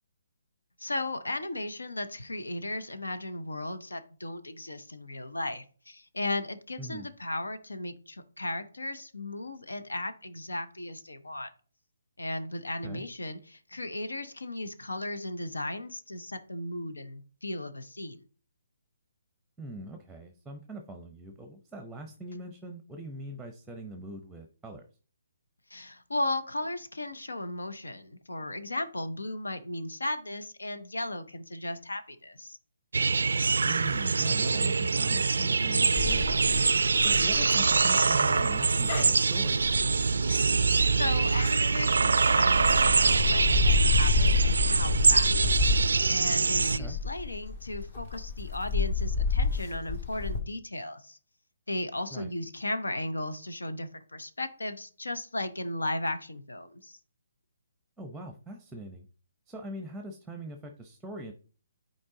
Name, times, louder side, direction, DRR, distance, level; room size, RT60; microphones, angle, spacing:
voice 1, 0.8-11.5 12.2-18.2 25.7-32.6 40.9-45.5 46.1-51.2 51.7-57.0, left 1 dB, 85° left, 10 dB, 0.9 m, -36 dB
voice 2, 19.6-24.8 33.6-36.3 37.0-39.6 46.8-47.0 52.1-52.3 58.0-59.1 59.5-61.3, right 1 dB, 5° right, 5 dB, 0.7 m, -42 dB
sound 1, 32.9-46.8, right 4 dB, 75° right, 0.3 m, -24 dB
sound 2, 36.0-41.9 42.5-50.4, left 4 dB, 50° left, 1.8 m, -30 dB
8.7 x 4.4 x 3.8 m, 0.41 s
figure-of-eight pair, 145°, 0 cm